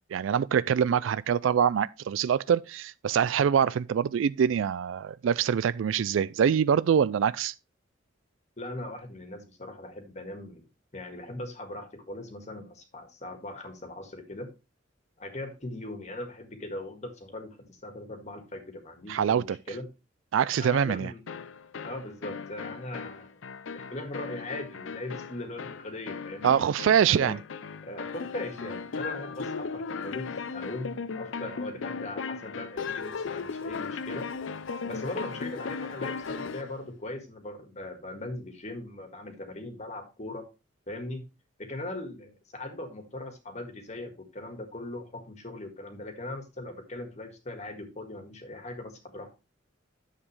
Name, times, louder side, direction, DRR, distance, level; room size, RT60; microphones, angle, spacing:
voice 1, 0.0-7.5 19.1-19.8 20.3-21.1 26.4-27.4, right 8 dB, 80° right, 0.3 m, -24 dB
voice 2, 8.6-10.7 10.9-14.5 15.2-19.9 20.6-21.2 21.8-23.4 23.7-26.6 27.1-27.4 27.8-34.3 34.8-40.5 40.9-41.2 41.6-49.3, left 1 dB, 35° left, 1.7 m, -39 dB
sound 1, 21.3-36.7, left 5 dB, 80° left, 0.6 m, -37 dB
10.0 x 7.4 x 3.1 m
head